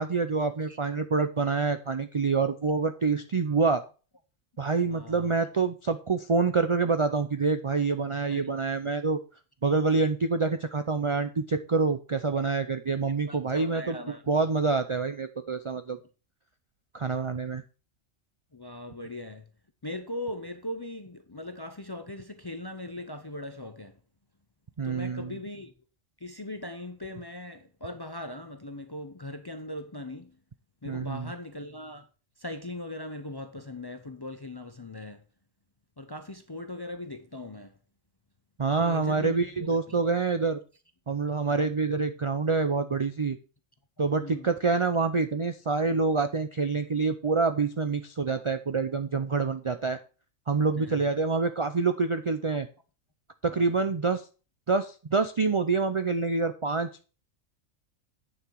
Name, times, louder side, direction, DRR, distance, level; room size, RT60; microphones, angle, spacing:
voice 1, 0.0-3.8 4.6-9.2 9.6-14.0 14.3-16.0 16.9-17.6 24.8-25.4 30.8-31.3 38.6-40.6 41.1-43.4 44.0-50.0 50.5-52.7 53.4-54.2 54.7-56.9, right 4 dB, 55° right, 0.3 m, -26 dB
voice 2, 4.9-5.3 8.3-8.5 13.2-14.2 18.5-19.4 19.8-24.0 24.8-25.7 26.2-30.3 30.8-32.1 32.4-35.2 36.0-37.7 38.7-40.0 44.2-44.5 50.8-51.0 53.5-53.7, left 1 dB, 30° left, 0.4 m, -39 dB
8.8 x 6.8 x 4.6 m
omnidirectional pair, 1.3 m